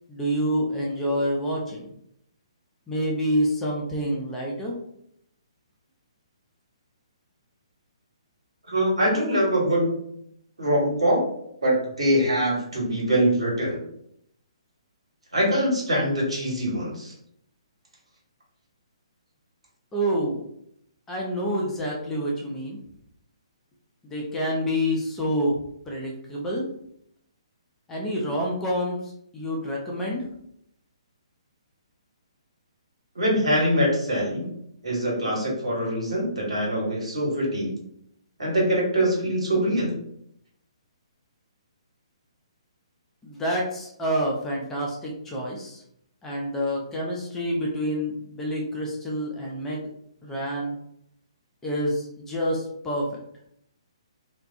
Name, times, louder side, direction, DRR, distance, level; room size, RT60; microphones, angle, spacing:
voice 1, 0.1-1.9 2.9-4.8 19.9-20.4 21.1-22.8 24.0-25.6 25.9-26.7 27.9-30.3 43.2-45.8 46.2-49.9 50.2-50.8 51.6-53.1, equal, 10° left, -2 dB, 0.4 m, -27 dB
voice 2, 8.7-10.1 10.6-11.3 11.6-13.8 15.3-17.1 33.1-34.5 34.8-37.7 38.4-40.0, equal, 70° right, -4 dB, 1.2 m, -23 dB
2.3 x 2.1 x 2.6 m, 0.73 s
figure-of-eight pair, 130°, 3 cm